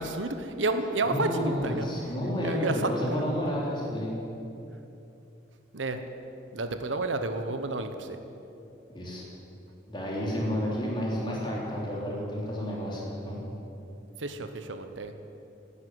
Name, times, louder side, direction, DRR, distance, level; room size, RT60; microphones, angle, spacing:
voice 1, 0.0-1.9 2.4-3.4 5.7-6.0 6.5-8.2 14.2-15.1, right 2 dB, 85° right, 8 dB, 1.0 m, -30 dB
voice 2, 1.0-4.1 8.9-9.3 9.9-13.4, equal, 25° left, -4 dB, 3.4 m, -31 dB
12.5 x 9.6 x 9.7 m, 2.8 s
head